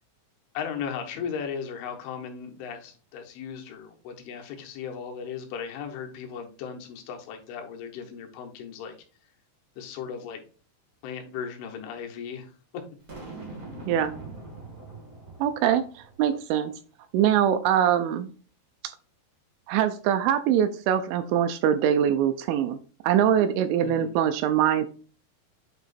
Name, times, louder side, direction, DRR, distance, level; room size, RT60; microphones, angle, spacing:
voice 1, 0.5-9.0 9.8-10.4 11.0-12.8 23.8-24.1, left 7 dB, 80° left, 3 dB, 3.4 m, -36 dB
Boom, 13.1-16.4, right 3 dB, 70° right, 0.8 m, -42 dB
voice 2, 15.4-16.7 17.1-18.3 19.7-22.8 23.0-24.9, right 9 dB, 85° right, 9 dB, 2.8 m, -23 dB
9.0 x 3.0 x 4.1 m, 0.39 s
omnidirectional pair, 5.7 m